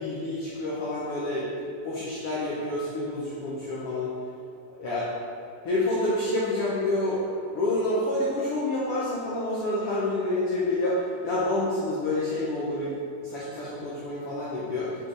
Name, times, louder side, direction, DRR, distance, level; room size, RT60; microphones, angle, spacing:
voice 1, 0.0-1.5 1.8-4.1 4.7-5.1 5.6-7.2 7.5-15.1, left 1 dB, 85° left, -7 dB, 1.2 m, -28 dB
7.4 x 3.8 x 3.9 m, 2.4 s
omnidirectional pair, 3.8 m